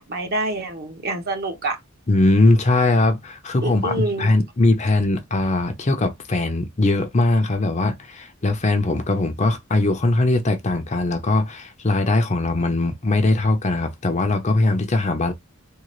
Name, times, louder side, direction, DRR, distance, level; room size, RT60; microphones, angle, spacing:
voice 1, 0.0-1.8 3.6-4.3, right 2 dB, 50° right, 1.1 m, -27 dB
voice 2, 2.1-15.3, left 2 dB, 35° left, 0.6 m, -20 dB
3.8 x 2.4 x 3.0 m
head